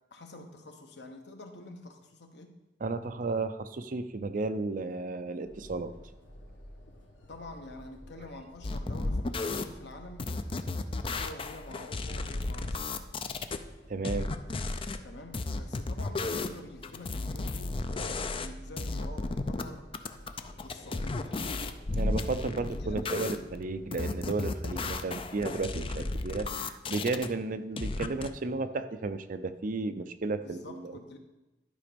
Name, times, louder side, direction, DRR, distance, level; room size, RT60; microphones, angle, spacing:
voice 1, 0.1-2.5 7.3-10.4 11.1-12.9 15.0-19.8 20.6-21.3 22.5-23.4 30.3-31.2, left 2 dB, 70° left, 5 dB, 1.1 m, -47 dB
voice 2, 2.8-5.9 13.9-14.3 22.0-31.0, right 3 dB, 50° right, 10 dB, 0.5 m, -33 dB
sound 1, 5.4-24.3, equal, 85° left, 1.3 m, -52 dB
sound 2, 8.6-9.6 10.2-13.6 14.0-15.0 15.3-16.6 16.8-18.5 18.8-19.6 19.9-23.4 23.9-27.3 27.8-28.3, left 3 dB, 30° left, 0.5 m, -33 dB
11.5 x 5.1 x 5.2 m, 1.0 s
head